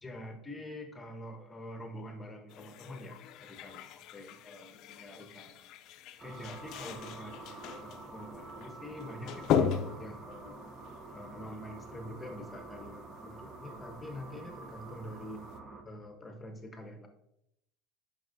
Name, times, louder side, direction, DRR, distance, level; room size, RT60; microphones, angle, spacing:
voice 1, 0.0-5.7 6.2-10.6 11.1-15.4 15.8-17.1, left 1 dB, 20° left, 5 dB, 1.1 m, -46 dB
sound 1, 2.5-12.2 12.7-12.8 13.2-13.7 14.0-14.1, left 8 dB, 55° left, 0.5 m, -37 dB
sound 2, 6.2-15.8, right 3 dB, 25° right, 0.9 m, -48 dB
9.3 x 5.4 x 2.7 m, 0.81 s
hypercardioid pair, 80°, 0 cm